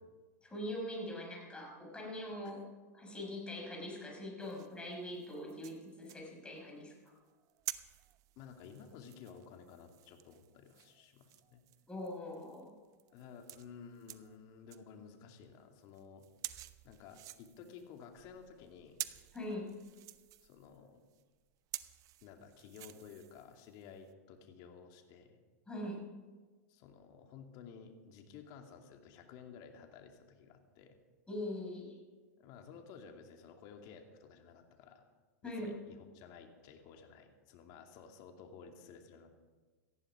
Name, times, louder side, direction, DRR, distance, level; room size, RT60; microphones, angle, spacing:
voice 1, 0.4-2.6 2.9-6.9 11.9-12.7 19.3-19.7 25.7-26.0 31.3-31.9 35.4-35.7, left 1 dB, 10° left, 0 dB, 6.0 m, -42 dB
sound 1, 4.4-14.9 15.3-15.4 15.8-24.1, right 14 dB, 40° right, 0.9 m, -50 dB
voice 2, 8.4-11.6 13.1-16.3 16.8-19.0 20.4-21.0 22.2-25.4 26.7-31.0 32.4-35.0 35.4-39.3, left 6 dB, 50° left, 3 dB, 2.6 m, -54 dB
18.0 x 14.0 x 5.0 m, 1.4 s
hypercardioid pair, 115°, 9 cm